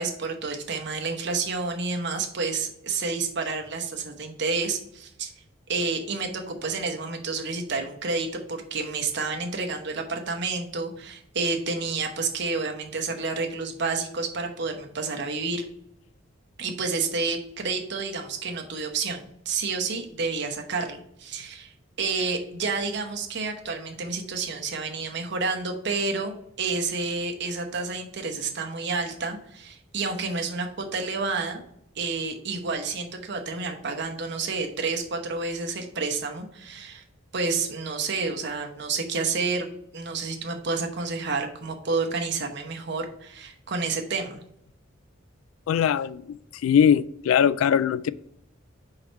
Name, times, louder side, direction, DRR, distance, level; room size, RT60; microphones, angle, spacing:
voice 1, 0.0-5.3 5.7-15.6 16.6-21.7 22.0-31.6 32.0-37.0 37.3-44.4, right 4 dB, 60° right, 1.0 m, -30 dB
voice 2, 45.7-46.2 46.6-48.1, left 8 dB, 90° left, 0.3 m, -20 dB
4.5 x 3.9 x 5.4 m
head